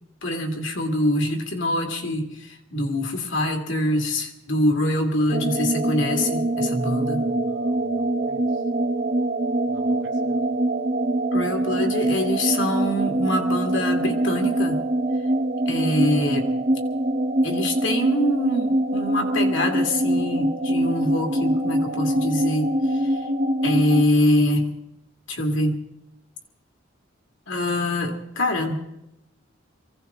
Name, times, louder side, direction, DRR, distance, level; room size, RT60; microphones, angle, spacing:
voice 1, 0.2-7.3 11.3-14.8 15.7-16.5 17.4-23.3 23.6-24.8 25.3-25.8 27.5-28.8, left 1 dB, 65° left, 3 dB, 2.4 m, -24 dB
sound 1, 5.3-24.1, right 1 dB, 40° right, 1.1 m, -24 dB
voice 2, 7.1-8.6 9.7-10.4, right 1 dB, 70° right, 0 dB, 2.2 m, -47 dB
23.5 x 16.5 x 3.7 m, 0.85 s
head